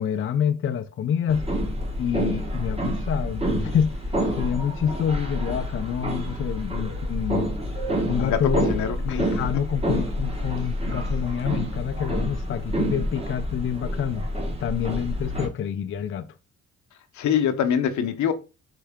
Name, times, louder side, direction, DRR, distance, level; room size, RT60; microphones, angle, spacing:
voice 1, 0.0-1.5 2.0-7.5 8.1-8.7 9.0-14.3 14.6-16.3, left 8 dB, 45° left, 0.5 m, -27 dB
sound 1, 1.3-15.5, equal, 20° right, 1.3 m, -28 dB
voice 2, 17.2-18.3, left 8 dB, 70° left, 0.8 m, -23 dB
4.6 x 3.3 x 3.5 m
cardioid pair, 90°, 30 cm